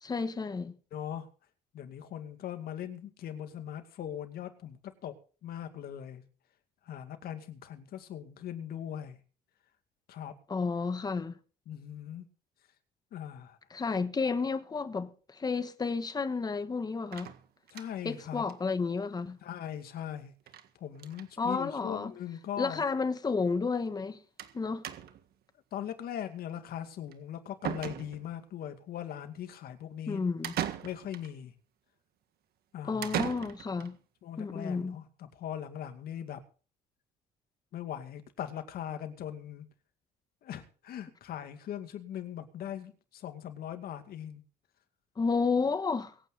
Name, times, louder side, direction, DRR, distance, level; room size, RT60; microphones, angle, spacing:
voice 1, 0.0-0.7 10.5-11.4 13.7-17.3 18.0-19.4 21.4-22.1 22.6-24.2 24.5-24.8 30.1-30.5 32.8-34.0 34.4-35.0 45.2-46.1, left 4 dB, 25° left, 1.3 m, -31 dB
voice 2, 0.9-1.3 1.7-5.2 5.4-6.2 6.9-9.2 10.1-10.4 11.7-12.3 13.1-13.6 17.7-18.4 19.4-20.3 20.8-22.8 25.7-30.2 30.8-31.5 32.7-33.2 34.2-36.4 37.7-39.7 40.4-44.4, left 10 dB, 65° left, 2.2 m, -40 dB
sound 1, 17.1-18.1 18.5-18.6 18.9-19.0 19.2-19.3 20.5-20.7 21.0-21.3 22.2-22.3 22.6-22.7 24.4-24.6 24.8-25.3 27.1-27.2 27.6-28.4 30.4-31.3 33.0-33.9, right 11 dB, 65° right, 1.7 m, -37 dB
24.0 x 9.1 x 4.0 m
cardioid pair, 110°, 17 cm